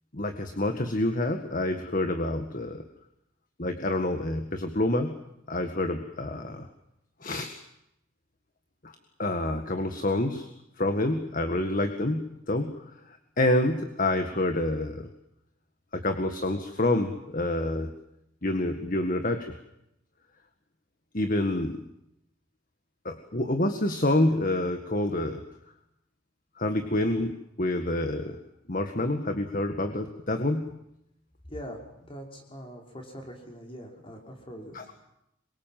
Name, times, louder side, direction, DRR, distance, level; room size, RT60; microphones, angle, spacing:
voice 1, 0.1-2.8 3.6-5.2 5.5-6.7 7.2-7.5 8.8-10.5 10.8-15.1 15.9-17.9 18.4-19.5 21.1-21.8 23.0-25.4 26.6-28.4 28.7-30.8 34.7-34.9, left 1 dB, 45° left, 7 dB, 1.9 m, -28 dB
voice 2, 31.5-34.8, equal, 30° left, 2 dB, 5.8 m, -42 dB
26.5 x 24.0 x 7.7 m, 0.80 s
head